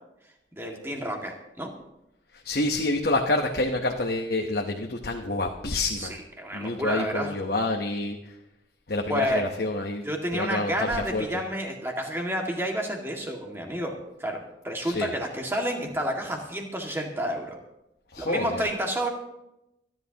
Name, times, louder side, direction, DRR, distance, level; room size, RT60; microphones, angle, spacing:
voice 1, 0.6-1.7 6.0-7.3 9.1-9.4 10.0-17.6 18.2-19.1, equal, 15° right, 0 dB, 2.0 m, -30 dB
voice 2, 2.4-6.2 6.5-8.2 8.9-10.1 10.3-11.3 14.8-15.1 18.1-18.6, left 2 dB, 55° left, 2 dB, 1.0 m, -28 dB
27.0 x 11.0 x 2.9 m, 0.88 s
head